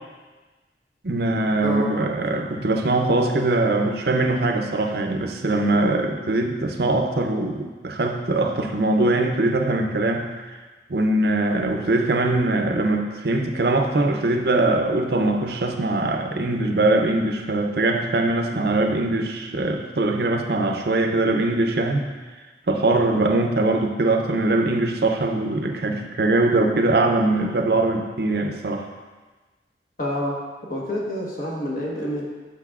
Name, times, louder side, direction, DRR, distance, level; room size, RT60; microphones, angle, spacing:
voice 1, 1.0-10.3 10.9-22.1 22.7-28.9, right 2 dB, 60° right, 4 dB, 0.6 m, -22 dB
voice 2, 30.0-30.4 30.7-32.3, left 1 dB, 50° left, -4 dB, 1.3 m, -27 dB
7.9 x 6.3 x 2.4 m, 1.3 s
head